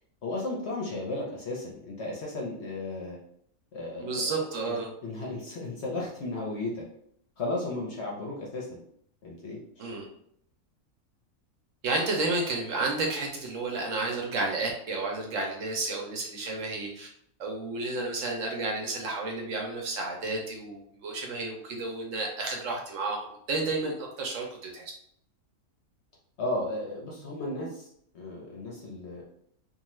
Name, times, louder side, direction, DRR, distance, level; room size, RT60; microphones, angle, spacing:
voice 1, 0.2-3.2 3.7-6.9 7.4-8.8 9.2-9.9 26.4-27.9 28.1-29.2, left 2 dB, 60° left, -2 dB, 0.7 m, -35 dB
voice 2, 4.0-4.9 9.8-10.0 11.8-17.1 17.4-24.8, right 3 dB, 65° right, 0 dB, 0.9 m, -31 dB
2.6 x 2.3 x 3.0 m, 0.69 s
omnidirectional pair, 1.5 m